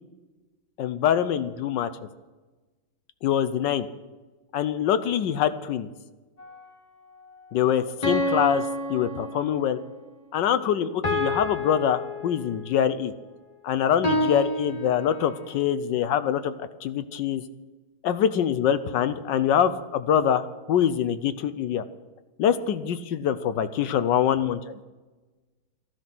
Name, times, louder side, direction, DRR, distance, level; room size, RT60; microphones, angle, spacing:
voice 1, 0.8-1.9 3.2-3.9 4.5-5.9 7.5-8.6 8.9-9.8 10.3-13.1 13.6-16.5 16.8-17.4 18.0-21.8 22.4-24.6, left 9 dB, 70° left, 12 dB, 1.2 m, -24 dB
sound 1, 6.4-6.6 8.0-9.8 11.0-12.7 14.0-15.5, left 1 dB, 30° left, 0.7 m, -29 dB
14.5 x 12.5 x 6.0 m, 1.2 s
omnidirectional pair, 2.3 m